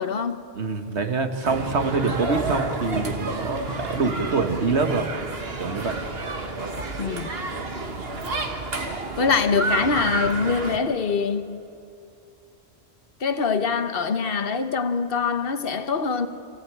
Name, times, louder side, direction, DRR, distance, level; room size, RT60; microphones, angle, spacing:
voice 1, 0.0-0.4 7.0-7.3 9.2-11.6 13.2-16.3, left 5 dB, 60° left, 10 dB, 1.3 m, -24 dB
voice 2, 0.6-5.1 5.6-6.0, right 4 dB, 80° right, 6 dB, 1.8 m, -25 dB
sound 1, 1.4-10.8, right 3 dB, 65° right, 1.8 m, -30 dB
27.5 x 15.5 x 9.0 m, 2.6 s
omnidirectional pair, 1.1 m